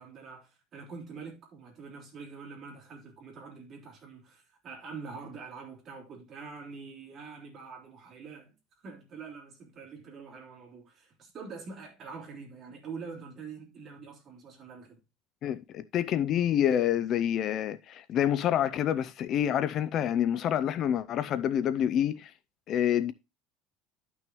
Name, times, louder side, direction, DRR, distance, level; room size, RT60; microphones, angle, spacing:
voice 1, 0.0-8.5 8.8-15.0, right 5 dB, 30° right, 3.8 m, -45 dB
voice 2, 15.4-22.3 22.7-23.1, left 10 dB, 35° left, 0.4 m, -27 dB
12.0 x 6.1 x 3.0 m
cardioid pair, 170°, 0 cm